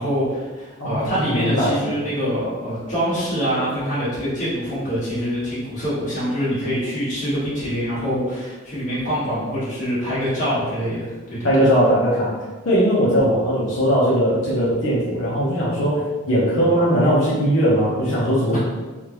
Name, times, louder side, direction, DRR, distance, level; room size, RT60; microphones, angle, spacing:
voice 1, 0.0-11.5 18.5-18.6, equal, 35° left, -11 dB, 1.5 m, -25 dB
voice 2, 0.8-1.8 11.4-12.3 12.6-18.6, equal, 70° left, -9 dB, 0.8 m, -19 dB
3.5 x 2.5 x 3.0 m, 1.3 s
head